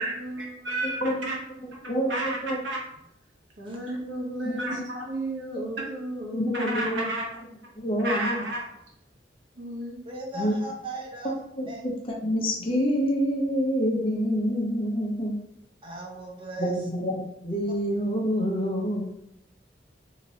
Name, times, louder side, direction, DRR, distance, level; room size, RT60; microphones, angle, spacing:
voice 1, 0.0-2.8 3.6-7.6 8.0-8.7 9.6-10.0, right 1 dB, 75° right, -2 dB, 1.0 m, -32 dB
voice 2, 1.9-2.6 4.4-4.8 6.3-7.2 7.8-8.4 10.3-10.6 11.6-15.3 16.6-19.1, equal, 30° left, -1 dB, 0.6 m, -27 dB
voice 3, 10.0-11.3 11.7-11.9 15.8-16.8, right 1 dB, 30° right, -2 dB, 0.7 m, -37 dB
3.0 x 2.9 x 2.7 m, 0.77 s
head